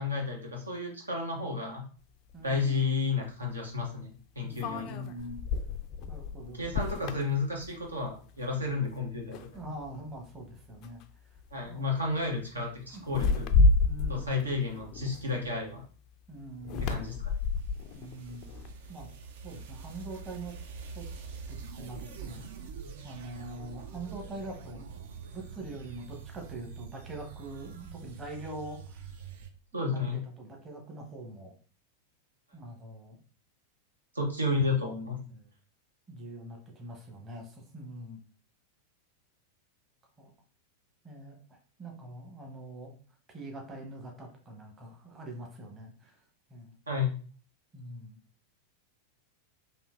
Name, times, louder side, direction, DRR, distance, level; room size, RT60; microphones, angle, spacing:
voice 1, 0.0-1.8 2.4-5.1 6.6-9.4 11.5-13.5 14.1-15.8 16.8-17.2 29.7-30.2 34.1-35.2 46.9-47.1, left 3 dB, 80° right, 0 dB, 0.7 m, -32 dB
sound 1, 2.3-2.4 4.6-8.2 8.6-8.9 9.3-10.0 10.8-11.0 11.4-11.7 13.0-15.7 16.6-19.0, left 3 dB, 40° left, 0.3 m, -30 dB
voice 2, 2.3-3.1 4.4-5.4 6.1-7.2 9.5-11.0 11.7-11.9 12.9-13.0 13.8-14.4 16.3-17.0 17.9-18.5 18.9-19.1 19.4-20.5 20.8-22.5 23.0-25.0 25.3-29.1 29.7-31.5 32.5-33.2 35.3-35.5 36.1-38.2 40.2-40.3 41.0-42.9 43.3-46.2 46.5-46.8 47.7-48.2, right 1 dB, 20° right, 1 dB, 0.9 m, -44 dB
sound 2, 16.6-29.5, right 5 dB, 55° right, 0.4 m, -45 dB
3.5 x 2.6 x 2.5 m, 0.40 s
figure-of-eight pair, 90°, 0 cm